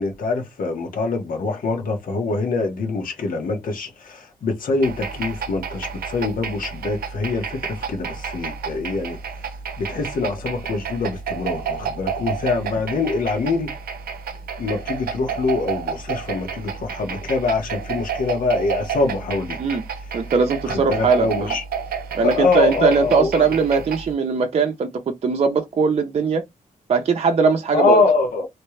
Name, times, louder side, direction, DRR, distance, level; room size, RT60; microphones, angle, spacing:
voice 1, 0.0-9.2 9.8-13.7 14.6-19.8 20.7-21.6 22.2-23.5 27.7-28.5, left 3 dB, 65° left, 1.3 m, -24 dB
sound 1, 4.8-24.1, right 6 dB, 90° right, 0.6 m, -31 dB
voice 2, 20.1-21.5 22.1-26.4 26.9-28.0, right 5 dB, 45° right, 0.6 m, -20 dB
3.2 x 2.9 x 3.2 m
wide cardioid pair, 150°, 15 cm